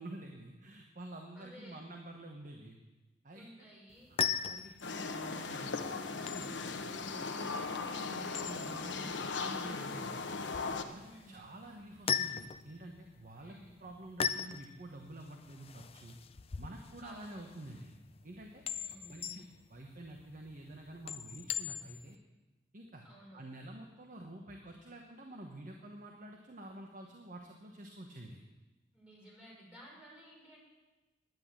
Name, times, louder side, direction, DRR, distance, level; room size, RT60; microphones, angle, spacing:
voice 1, 0.0-2.8 3.2-3.7 4.2-6.6 7.1-10.3 10.9-16.2 16.6-17.9 18.2-18.6 19.1-19.4 19.7-22.2 22.7-23.0 23.3-28.4, right 1 dB, 45° right, 2 dB, 1.1 m, -49 dB
voice 2, 1.3-1.8 3.3-4.1 6.9-7.2 11.0-11.5 13.4-13.8 17.0-17.4 18.7-19.4 23.0-23.4 28.9-30.6, equal, 5° right, -5 dB, 4.9 m, -55 dB
sound 1, 3.9-22.1, left 8 dB, 35° left, 0.4 m, -41 dB
sound 2, 4.8-10.8, left 4 dB, 85° left, 0.9 m, -38 dB
10.5 x 9.9 x 7.4 m, 1.1 s
head